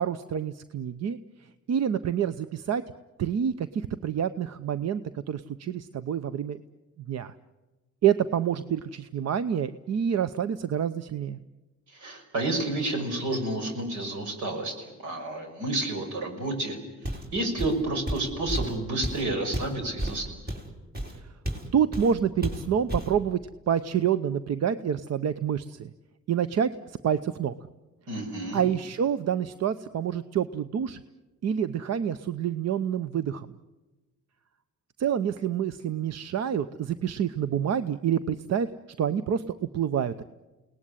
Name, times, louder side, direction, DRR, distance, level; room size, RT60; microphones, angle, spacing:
voice 1, 0.0-2.8 3.2-6.6 7.1-7.3 8.0-11.4 21.7-23.4 23.7-25.9 26.3-27.5 28.5-31.0 31.4-33.5 35.0-38.7 39.0-40.2, right 8 dB, 60° right, 13 dB, 0.8 m, -27 dB
voice 2, 11.9-16.8 17.3-20.4 28.1-28.6, right 2 dB, 80° right, 5 dB, 6.0 m, -30 dB
Walk footsteps, 17.0-17.3 17.6-21.7 21.9-22.2 22.4-23.2, equal, 30° right, 4.7 m, -32 dB
29.0 x 19.0 x 10.0 m, 1.2 s
cardioid pair, 90°, 30 cm